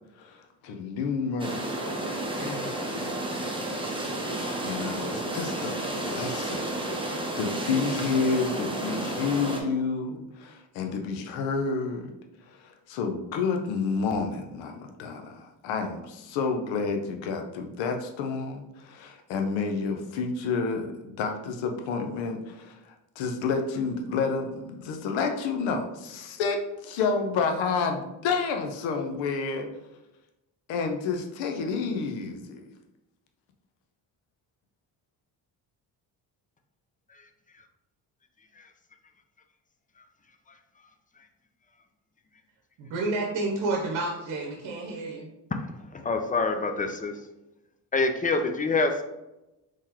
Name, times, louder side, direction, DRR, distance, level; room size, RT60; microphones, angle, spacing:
voice 1, 0.2-1.8 2.3-3.7 4.6-12.1 12.6-29.7 30.7-32.7, left 4 dB, 80° left, 4 dB, 0.7 m, -30 dB
sound 1, 1.4-9.6, right 1 dB, 10° right, 0.8 m, -31 dB
voice 2, 42.8-45.3, right 2 dB, 75° right, -1 dB, 0.8 m, -30 dB
voice 3, 45.9-47.1 47.9-49.0, left 3 dB, 20° left, 6 dB, 0.5 m, -26 dB
3.7 x 3.2 x 2.8 m, 0.96 s
supercardioid pair, 60°, 44 cm